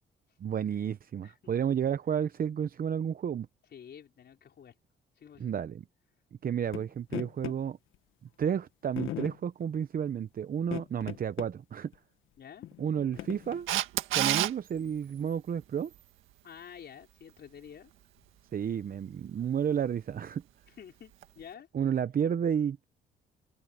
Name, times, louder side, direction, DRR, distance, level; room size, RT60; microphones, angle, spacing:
voice 1, 0.4-3.5 5.4-5.8 6.4-7.8 8.4-11.9 12.8-13.7 14.1-15.9 18.5-20.4 21.7-22.8, right 8 dB, 45° right, 0.8 m, -31 dB
voice 2, 1.2-1.6 3.7-4.7 5.1-5.5 12.4-12.7 16.4-17.9 20.7-21.7, left 8 dB, 55° left, 4.8 m, -49 dB
sound 1, 6.7-6.8 7.1-7.6 8.4-8.5 9.0-9.4 10.6-11.5 11.9-12.0 12.6-13.6, left 13 dB, 90° left, 1.6 m, -38 dB
Camera, 13.7-14.5 21.2-21.3, right 13 dB, 90° right, 1.8 m, -27 dB
cardioid pair, 90°, 20 cm